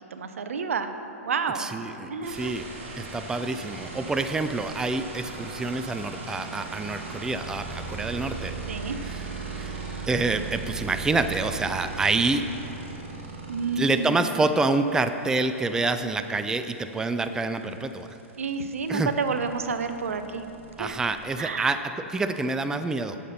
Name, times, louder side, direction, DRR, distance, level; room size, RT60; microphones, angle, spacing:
voice 1, 0.1-0.9 1.2-1.7 2.0-2.5 8.7-9.0 13.5-14.2 18.4-20.4 20.8-21.0 21.4-21.8, right 5 dB, 80° right, 9 dB, 0.7 m, -29 dB
voice 2, 1.5-2.7 3.0-8.5 9.0-9.3 9.5-12.5 13.8-18.1 18.9-19.1 20.8-23.2, right 3 dB, 10° right, 9 dB, 0.4 m, -27 dB
sound 1, 2.2-14.5 16.6-16.7 16.9-21.3, right 4 dB, 65° right, 2.5 m, -38 dB
11.5 x 7.3 x 4.3 m, 2.9 s
hypercardioid pair, 115°, 7 cm